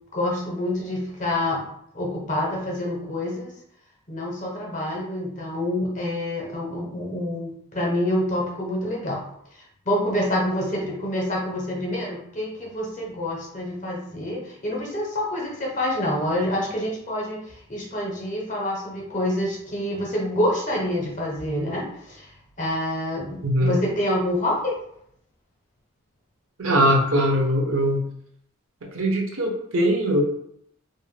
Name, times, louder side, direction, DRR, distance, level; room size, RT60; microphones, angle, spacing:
voice 1, 0.1-1.6 1.9-3.5 4.1-9.2 9.5-24.8, left 1 dB, 35° left, -2 dB, 0.7 m, -27 dB
voice 2, 23.4-23.7 26.6-28.0 28.9-30.2, equal, 70° right, 0 dB, 0.6 m, -21 dB
2.6 x 2.1 x 3.1 m, 0.71 s
head